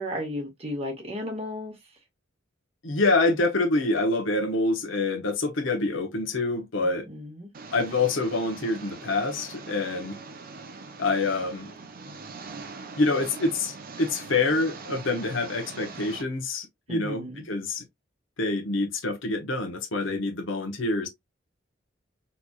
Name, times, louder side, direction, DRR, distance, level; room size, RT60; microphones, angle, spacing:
voice 1, 0.0-1.7 7.1-7.5 16.9-17.4, left 1 dB, 35° right, 1.8 m, -34 dB
voice 2, 2.8-7.1 7.7-10.2 11.0-11.7 13.0-17.8 18.4-21.1, left 3 dB, 90° left, 1.0 m, -26 dB
Engine, 7.5-16.2, right 4 dB, 50° right, 0.6 m, -42 dB
4.2 x 2.9 x 2.4 m
head